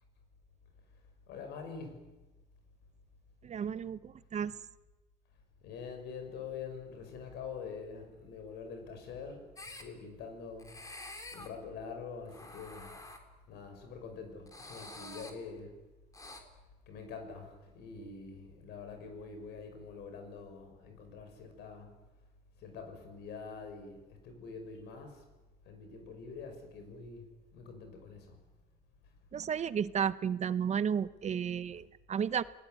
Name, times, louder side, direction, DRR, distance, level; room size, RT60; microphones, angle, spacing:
voice 1, 1.3-2.2 5.6-9.5 9.8-10.8 11.3-13.0 13.5-15.7 16.9-21.9 22.6-25.2 25.7-28.4, left 5 dB, 80° left, 6 dB, 6.2 m, -45 dB
voice 2, 3.4-4.5 29.3-32.4, right 7 dB, 40° right, 15 dB, 0.9 m, -33 dB
Typewriter vocoded by sounds of a construction area, 9.6-9.8 10.6-11.5 12.2-13.2 14.5-15.3 16.1-16.4, left 2 dB, 20° left, 3.8 m, -47 dB
29.5 x 18.5 x 9.4 m, 1.1 s
cardioid pair, 110°, 17 cm